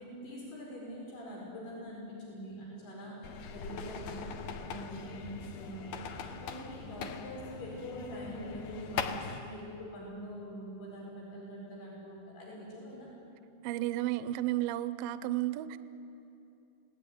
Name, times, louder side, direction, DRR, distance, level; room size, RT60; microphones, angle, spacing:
voice 1, 0.0-9.1 9.4-13.1, equal, 85° left, -3 dB, 6.9 m, -44 dB
sound 1, 3.2-9.4, left 6 dB, 65° left, 2.6 m, -41 dB
voice 2, 13.6-15.8, right 14 dB, 80° right, 13 dB, 2.2 m, -32 dB
27.5 x 18.5 x 9.4 m, 2.8 s
omnidirectional pair, 4.5 m